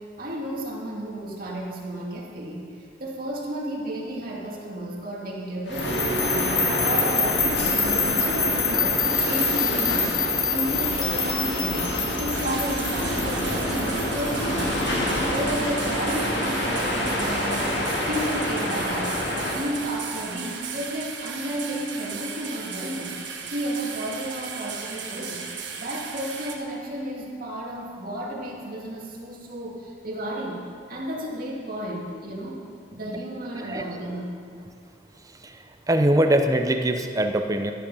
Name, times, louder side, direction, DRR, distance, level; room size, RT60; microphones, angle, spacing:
voice 1, 0.2-2.6 3.0-11.9 12.2-14.7 15.2-17.8 18.1-19.2 19.5-23.2 23.5-25.4 25.8-30.6 30.9-32.6 32.9-34.3, right 1 dB, 50° right, -3 dB, 2.4 m, -32 dB
sound 1, 5.7-20.8, left 1 dB, 75° left, 2.0 m, -27 dB
sound 2, 5.8-14.8, left 5 dB, 25° left, 1.1 m, -27 dB
sound 3, 12.3-26.5, right 6 dB, 70° right, 1.4 m, -36 dB
voice 2, 35.9-37.7, right 1 dB, 20° right, 6 dB, 0.6 m, -21 dB
12.5 x 10.5 x 5.6 m, 2.4 s
head